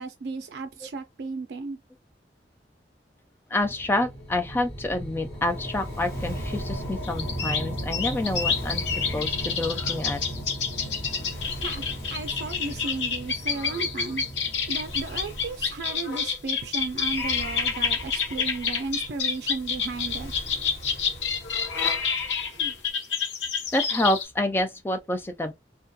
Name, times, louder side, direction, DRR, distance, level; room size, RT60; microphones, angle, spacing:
voice 1, 0.0-1.8 11.6-11.8 12.1-14.2 14.7-20.3 22.5-22.7, right 3 dB, 70° right, 0.4 m, -34 dB
voice 2, 3.5-8.8 9.1-10.2 23.7-25.5, left 1 dB, 10° left, 0.3 m, -28 dB
sound 1, 3.6-16.1, right 1 dB, 35° left, 1.1 m, -36 dB
Waves surf, 5.4-22.9, equal, 60° left, 1.5 m, -44 dB
sound 2, 7.0-24.2, left 6 dB, 90° left, 0.7 m, -28 dB
2.3 x 2.2 x 2.7 m
head